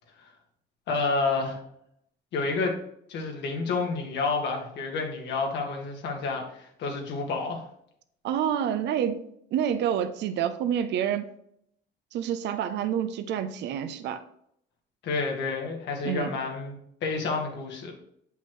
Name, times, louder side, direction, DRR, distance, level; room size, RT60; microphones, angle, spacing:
voice 1, 0.9-1.6 2.3-2.7 3.1-7.6 15.0-16.7 17.0-17.9, left 4 dB, 75° left, 1.6 m, -29 dB
voice 2, 8.2-11.3 12.1-14.2 16.0-16.3, right 9 dB, 70° right, 0.6 m, -28 dB
7.5 x 5.6 x 3.1 m
cardioid pair, 110°, 19 cm